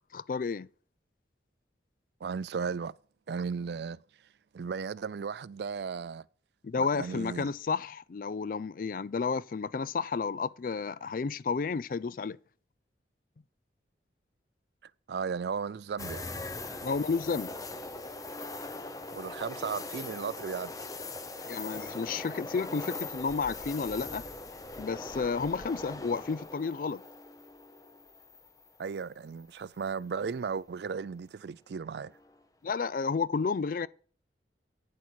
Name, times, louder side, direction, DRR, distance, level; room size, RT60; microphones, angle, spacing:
voice 1, 0.1-0.7 6.6-12.4 16.8-17.5 21.4-24.3 24.8-27.0 32.6-33.9, left 5 dB, 50° left, 0.4 m, -31 dB
voice 2, 2.2-2.9 3.3-4.0 4.5-6.3 6.8-7.5 15.1-16.3 19.1-20.7 28.8-32.1, right 5 dB, 70° right, 0.4 m, -35 dB
sound 1, 16.0-29.0 29.4-29.5 31.9-32.4, left 2 dB, 20° left, 0.8 m, -41 dB
9.8 x 8.1 x 4.5 m
head